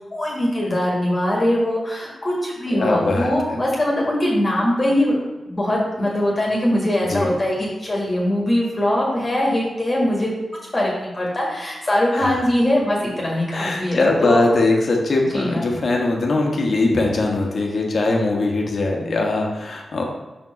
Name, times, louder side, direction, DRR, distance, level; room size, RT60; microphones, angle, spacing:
voice 1, 0.1-5.2 5.5-10.3 10.7-14.4 15.3-15.6, left 1 dB, 35° left, -4 dB, 1.7 m, -21 dB
voice 2, 2.7-3.6 7.1-7.3 12.1-12.4 13.5-20.0, left 2 dB, 60° left, 0 dB, 1.3 m, -21 dB
5.7 x 4.6 x 4.2 m, 1.1 s
cardioid pair, 70°, 0 cm